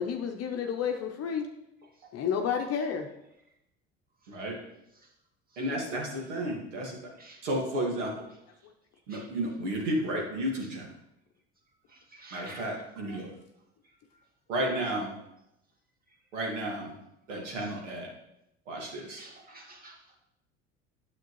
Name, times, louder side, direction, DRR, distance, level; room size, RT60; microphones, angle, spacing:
voice 1, 0.0-1.5 2.1-3.1 8.6-8.7, left 7 dB, 45° left, 3 dB, 0.8 m, -30 dB
voice 2, 5.6-7.0 7.4-8.1 9.1-10.9 12.3-13.3 14.5-15.2 16.3-17.0 17.3-18.1 18.7-19.2, right 1 dB, 85° right, -1 dB, 1.9 m, -32 dB
voice 3, 11.9-12.7 17.6-17.7 19.2-20.0, right 2 dB, 25° right, 0 dB, 1.9 m, -49 dB
9.3 x 7.3 x 3.1 m, 0.86 s
hypercardioid pair, 75°, 35 cm